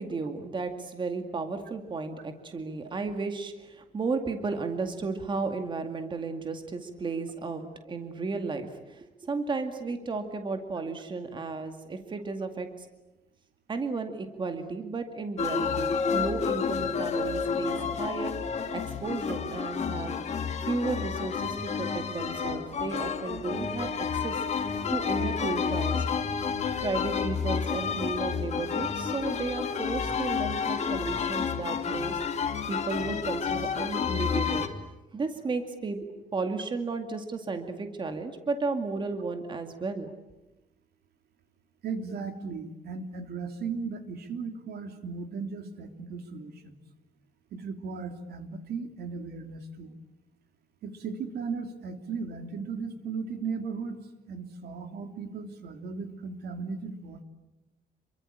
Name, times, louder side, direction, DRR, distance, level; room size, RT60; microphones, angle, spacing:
voice 1, 0.0-12.9 13.7-18.3 18.7-20.2 20.6-24.4 24.9-26.1 26.8-34.7 35.1-40.1, right 4 dB, 25° right, 6 dB, 2.1 m, -34 dB
sound 1, 15.4-34.7, left 6 dB, 40° left, 2.5 m, -30 dB
voice 2, 41.8-46.8 47.5-49.9 50.8-54.0 54.3-57.2, right 5 dB, 65° right, 7 dB, 3.1 m, -36 dB
28.5 x 23.5 x 8.7 m, 0.98 s
cardioid pair, 170°, 18 cm